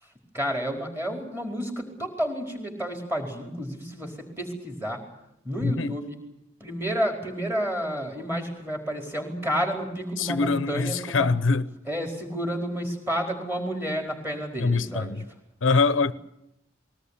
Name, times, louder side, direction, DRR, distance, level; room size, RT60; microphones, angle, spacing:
voice 1, 0.0-5.0 5.4-6.2 6.6-11.3 11.9-15.2, equal, 10° right, 4.6 m, -30 dB
voice 2, 10.2-11.6 14.6-15.2 15.6-16.1, left 4 dB, 70° left, 0.8 m, -23 dB
20.5 x 19.0 x 9.9 m
head